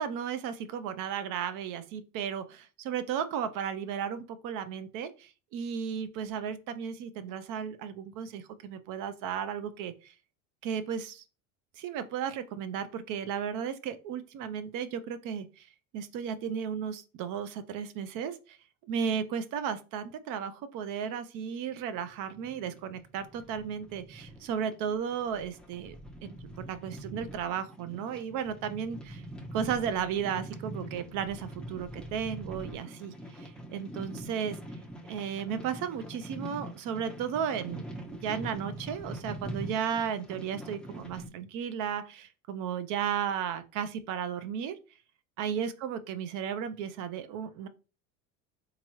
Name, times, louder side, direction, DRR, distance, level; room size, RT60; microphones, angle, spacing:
voice 1, 0.0-9.9 10.6-11.2 11.8-15.7 15.9-18.3 18.9-26.0 26.2-29.2 29.5-34.6 35.1-44.8 45.4-47.7, right 8 dB, 55° right, 0.6 m, -34 dB
sound 1, 22.0-41.3, right 1 dB, ahead, 0.5 m, -44 dB
3.6 x 2.9 x 2.9 m
supercardioid pair, 95°, 39 cm